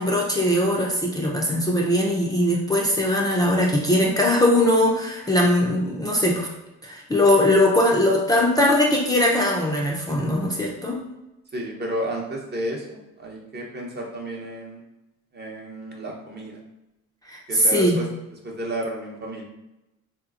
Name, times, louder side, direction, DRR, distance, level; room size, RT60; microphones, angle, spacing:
voice 1, 0.0-6.5 6.8-11.0 17.3-18.0, left 1 dB, 10° left, -3 dB, 0.5 m, -20 dB
voice 2, 11.5-14.8 15.3-16.6 17.5-18.1 18.4-19.4, right 1 dB, 35° right, -1 dB, 0.8 m, -32 dB
3.2 x 2.9 x 2.4 m, 0.94 s
cardioid pair, 90°, 30 cm